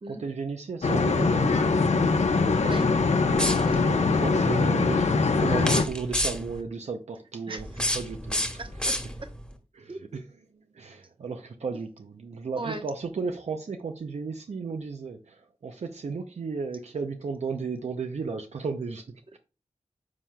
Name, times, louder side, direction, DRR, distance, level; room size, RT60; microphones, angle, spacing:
voice 1, 0.1-1.7 3.7-8.5 9.7-10.3 10.7-19.4, right 4 dB, 70° right, 0.6 m, -34 dB
sound 1, 0.8-5.8, left 4 dB, 70° left, 0.8 m, -22 dB
sound 2, 3.3-4.0 5.6-6.6 7.6-9.4, left 1 dB, 5° left, 1.3 m, -30 dB
voice 2, 8.6-9.3 9.9-10.0 12.6-12.8, right 2 dB, 45° right, 1.1 m, -37 dB
9.6 x 5.7 x 2.3 m
wide cardioid pair, 75°, 12 cm